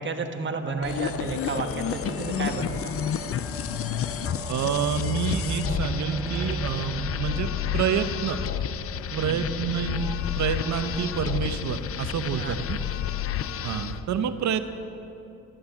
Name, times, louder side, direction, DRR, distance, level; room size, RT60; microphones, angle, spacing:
voice 1, 0.0-3.0 9.1-9.5 12.3-12.9, right 4 dB, 40° right, 6 dB, 1.3 m, -32 dB
sound 1, 0.6-10.1 10.9-11.1, right 3 dB, 10° right, 0.6 m, -38 dB
sound 2, 0.8-14.0, left 6 dB, 85° left, 1.0 m, -39 dB
sound 3, 0.8-14.0, left 10 dB, 50° left, 0.6 m, -31 dB
voice 2, 4.5-8.4 9.2-12.8 13.6-14.6, right 8 dB, 70° right, 9 dB, 1.1 m, -28 dB
12.5 x 12.5 x 7.3 m, 3.0 s
cardioid pair, 90°, 30 cm